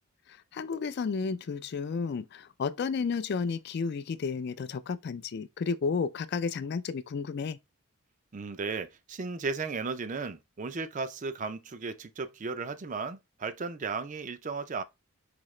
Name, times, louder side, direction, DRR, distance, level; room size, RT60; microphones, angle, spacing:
voice 1, 0.5-7.6, left 5 dB, 50° left, 0.3 m, -32 dB
voice 2, 8.3-14.8, right 4 dB, 35° right, 0.4 m, -35 dB
5.0 x 2.8 x 3.1 m
head